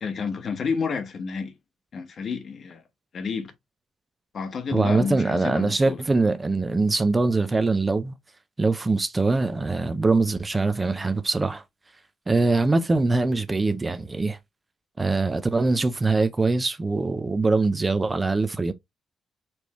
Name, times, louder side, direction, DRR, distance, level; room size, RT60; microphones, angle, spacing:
voice 1, 0.0-1.5 1.9-2.8 3.1-3.5 4.3-6.0, left 5 dB, 50° left, 1.2 m, -30 dB
voice 2, 4.7-8.1 8.6-11.6 12.3-14.4 15.0-18.7, right 3 dB, 20° right, 0.6 m, -23 dB
4.4 x 3.3 x 3.0 m
cardioid pair, 90°, 0 cm